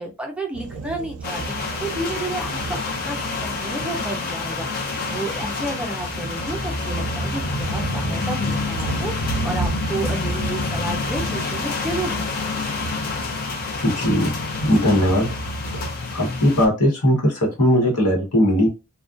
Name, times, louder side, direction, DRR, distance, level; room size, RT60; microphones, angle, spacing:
voice 1, 0.0-4.7 5.1-12.7, right 2 dB, 5° right, 1 dB, 0.4 m, -31 dB
sound 1, 0.5-16.0, right 5 dB, 85° right, 0.4 m, -34 dB
sound 2, 1.2-16.7, left 3 dB, 45° left, 0.5 m, -28 dB
voice 2, 13.8-14.3 14.6-15.3 16.1-18.7, equal, 85° left, -1 dB, 1.0 m, -19 dB
2.4 x 2.1 x 2.4 m, 0.28 s
head